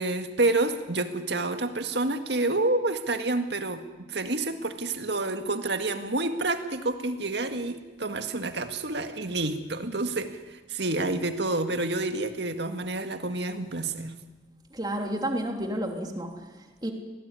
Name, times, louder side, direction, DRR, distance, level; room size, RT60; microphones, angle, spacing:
voice 1, 0.0-14.2, right 2 dB, 65° right, 7 dB, 2.0 m, -29 dB
voice 2, 14.7-16.9, right 1 dB, 20° right, 3 dB, 3.1 m, -31 dB
24.0 x 18.5 x 9.8 m, 1.2 s
head